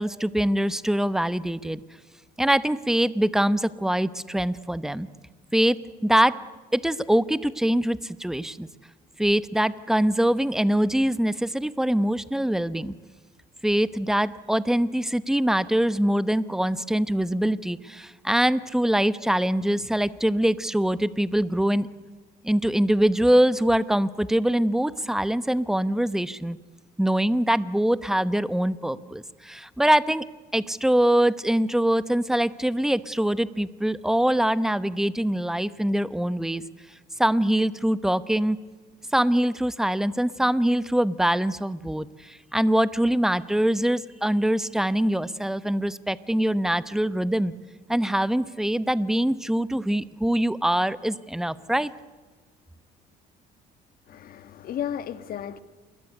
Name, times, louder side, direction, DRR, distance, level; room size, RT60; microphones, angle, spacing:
voice 1, 0.0-1.8 2.4-5.1 5.5-6.4 6.7-8.7 9.2-12.9 13.6-21.9 22.4-26.6 27.0-30.2 30.5-36.6 37.2-38.6 39.1-47.5 47.9-51.9, right 1 dB, 5° right, 0.9 m, -23 dB
voice 2, 54.1-55.6, left 9 dB, 60° left, 1.6 m, -33 dB
27.5 x 21.0 x 9.7 m
cardioid pair, 110°, 17 cm